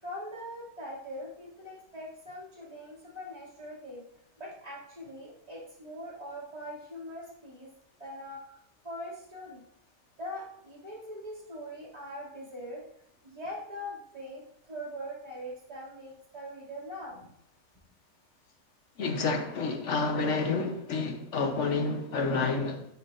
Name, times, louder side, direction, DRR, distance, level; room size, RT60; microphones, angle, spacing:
voice 1, 0.0-4.0 4.4-7.7 8.0-8.4 8.8-9.6 10.2-12.8 13.2-17.3, equal, 25° right, -7 dB, 2.4 m, -42 dB
voice 2, 19.0-22.9, left 4 dB, 60° left, 4 dB, 1.0 m, -29 dB
9.3 x 4.7 x 2.4 m, 0.76 s
omnidirectional pair, 1.5 m